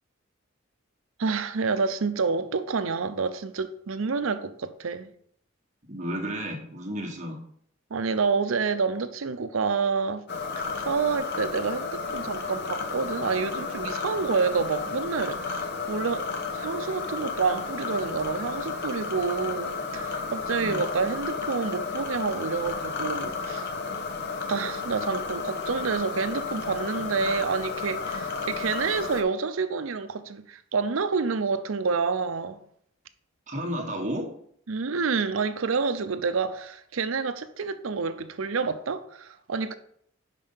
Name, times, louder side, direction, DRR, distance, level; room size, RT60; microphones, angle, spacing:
voice 1, 1.2-5.1 7.9-10.2 10.6-23.7 24.5-32.6 34.7-39.7, right 5 dB, 80° right, 0.6 m, -28 dB
voice 2, 5.9-7.4 20.6-20.8 33.5-34.3, equal, 35° right, 1.4 m, -32 dB
sound 1, 10.3-29.2, left 4 dB, 55° left, 0.9 m, -32 dB
5.5 x 5.3 x 5.6 m
head